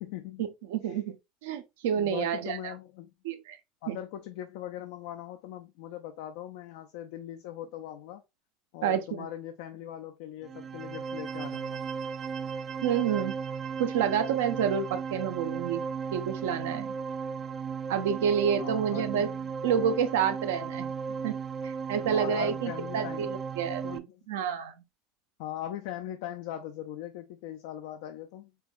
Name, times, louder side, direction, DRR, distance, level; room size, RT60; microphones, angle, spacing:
voice 1, 0.0-0.5 0.8-1.0 2.0-3.1 3.8-8.2 8.7-11.8 18.6-19.5 22.0-23.3 23.8-24.2 25.4-28.5, left 11 dB, 70° left, 0.4 m, -40 dB
voice 2, 0.7-1.2 1.4-2.6 3.2-3.6 3.9-4.0 8.8-9.3 12.8-13.4 13.8-15.8 16.1-16.9 17.9-19.3 19.6-20.9 21.2-21.3 21.6-24.8, right 8 dB, 80° right, 0.6 m, -29 dB
sound 1, 10.4-24.0, right 6 dB, 35° right, 0.3 m, -36 dB
4.5 x 2.3 x 2.5 m
supercardioid pair, 100°, 0 cm